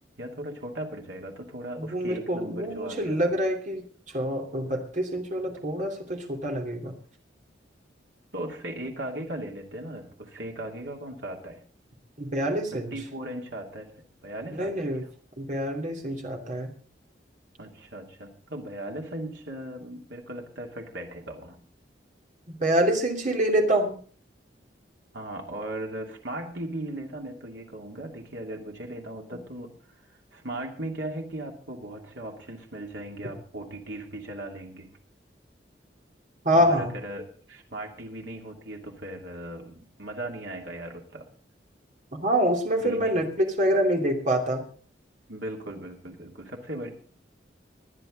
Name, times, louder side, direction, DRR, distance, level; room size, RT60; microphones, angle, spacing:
voice 1, 0.2-3.2 8.3-11.6 12.9-15.1 17.6-21.6 25.1-29.7 30.3-34.9 36.5-41.3 42.8-43.1 45.3-46.9, right 1 dB, 75° right, 1 dB, 2.7 m, -38 dB
voice 2, 1.8-6.9 12.2-12.9 14.5-15.0 15.4-16.7 22.5-24.0 36.4-36.9 42.2-44.7, equal, 45° right, 3 dB, 2.8 m, -26 dB
20.5 x 10.5 x 3.9 m, 0.41 s
head